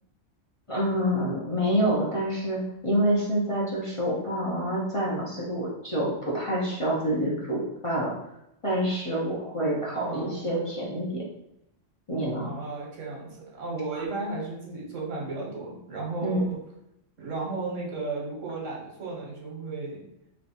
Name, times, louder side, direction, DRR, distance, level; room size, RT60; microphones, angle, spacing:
voice 1, 0.7-8.1 8.6-11.2 12.1-12.5 16.2-16.5, equal, 30° left, -6 dB, 0.8 m, -27 dB
voice 2, 9.9-10.4 12.4-16.6 17.2-20.1, right 3 dB, 75° right, -3 dB, 1.5 m, -34 dB
3.2 x 3.0 x 4.1 m, 0.82 s
omnidirectional pair, 1.3 m